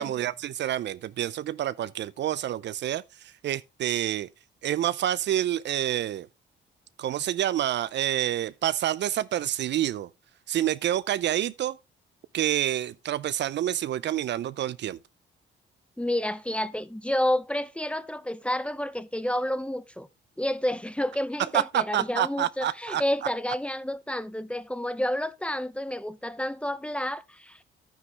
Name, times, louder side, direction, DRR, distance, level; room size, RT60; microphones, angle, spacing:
voice 1, 0.0-4.3 4.6-6.3 7.0-10.1 10.5-11.8 12.3-15.0 21.5-23.0, right 12 dB, 65° right, 0.5 m, -28 dB
voice 2, 16.0-20.1 20.4-27.6, left 1 dB, 5° left, 0.8 m, -30 dB
9.7 x 9.5 x 3.4 m
cardioid pair, 90°, 20 cm